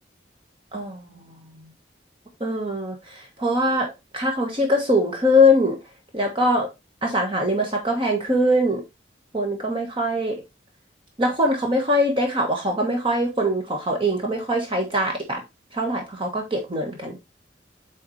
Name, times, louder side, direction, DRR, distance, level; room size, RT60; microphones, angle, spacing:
voice 1, 0.7-1.7 2.4-3.9 4.1-5.8 6.1-6.7 7.0-8.8 9.3-10.4 11.2-15.4 15.7-17.2, left 1 dB, 30° right, 2 dB, 1.4 m, -22 dB
8.0 x 4.2 x 3.2 m, 0.23 s
head